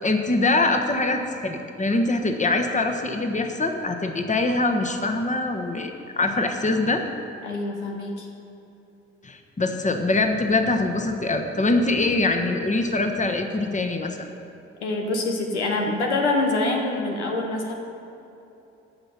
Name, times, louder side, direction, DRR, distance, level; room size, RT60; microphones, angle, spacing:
voice 1, 0.0-5.9 6.2-7.0 9.2-14.3, left 2 dB, 20° left, 5 dB, 1.3 m, -23 dB
voice 2, 7.4-8.3 14.8-17.7, left 2 dB, 90° left, 1 dB, 1.0 m, -25 dB
15.0 x 5.5 x 6.0 m, 2.9 s
hypercardioid pair, 45°, 33 cm